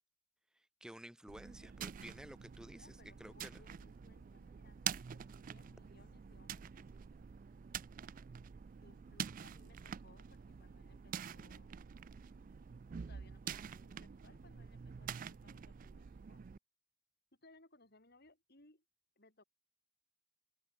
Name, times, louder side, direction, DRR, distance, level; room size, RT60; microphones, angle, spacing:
voice 1, 0.5-3.6, equal, 5° right, 0.8 m, -53 dB
sound 1, 1.3-16.5, left 1 dB, 75° left, 7.6 m, -84 dB
sound 2, 1.3-16.6, right 8 dB, 40° right, 0.3 m, -47 dB
voice 2, 2.8-6.8 8.8-11.7 12.9-16.4 17.3-18.8 19.2-19.4, left 2 dB, 50° left, 5.2 m, -66 dB
head